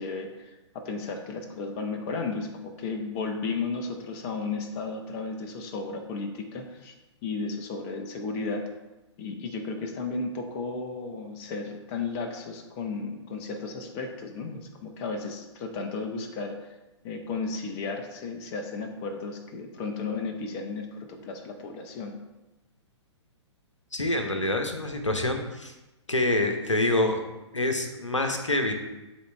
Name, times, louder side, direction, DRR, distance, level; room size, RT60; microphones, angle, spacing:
voice 1, 0.0-6.9 7.2-8.7 9.2-16.7 17.0-22.2, left 4 dB, 30° left, 4 dB, 0.9 m, -34 dB
voice 2, 23.9-25.7 26.1-27.2 27.5-28.7, left 1 dB, 85° left, 5 dB, 1.0 m, -26 dB
11.0 x 4.1 x 3.3 m, 1.0 s
figure-of-eight pair, 120°, 15 cm